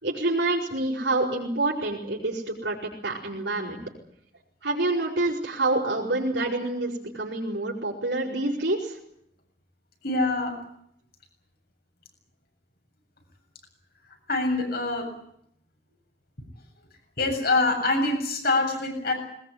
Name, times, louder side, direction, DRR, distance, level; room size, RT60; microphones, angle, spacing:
voice 1, 0.0-3.8 4.6-9.0, right 2 dB, 75° right, -5 dB, 5.8 m, -27 dB
voice 2, 10.0-10.5 14.3-15.1 17.2-19.1, left 2 dB, 60° left, 3 dB, 7.4 m, -24 dB
21.0 x 20.5 x 9.8 m, 0.72 s
head